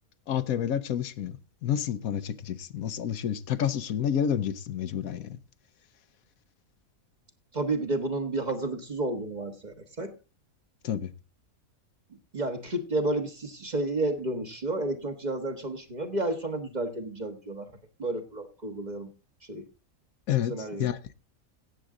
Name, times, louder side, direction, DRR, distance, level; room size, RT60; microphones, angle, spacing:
voice 1, 0.3-5.4 10.8-11.1 20.3-21.0, left 9 dB, 80° left, 1.2 m, -29 dB
voice 2, 7.5-10.1 12.3-17.7 18.0-19.1 19.5-19.7 20.5-20.9, right 2 dB, 30° right, 1.3 m, -31 dB
17.0 x 7.6 x 3.8 m
omnidirectional pair, 1.5 m